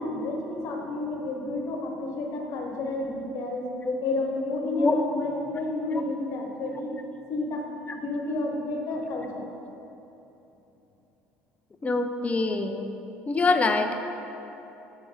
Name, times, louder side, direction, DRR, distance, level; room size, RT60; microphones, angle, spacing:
voice 1, 0.0-3.7 4.0-6.9 7.3-7.7 7.9-9.5, left 2 dB, 60° left, 1 dB, 1.2 m, -30 dB
voice 2, 11.8-12.9 13.3-14.0, left 3 dB, 25° left, 6 dB, 0.6 m, -25 dB
7.3 x 3.8 x 6.3 m, 3.0 s
hypercardioid pair, 75°, 6 cm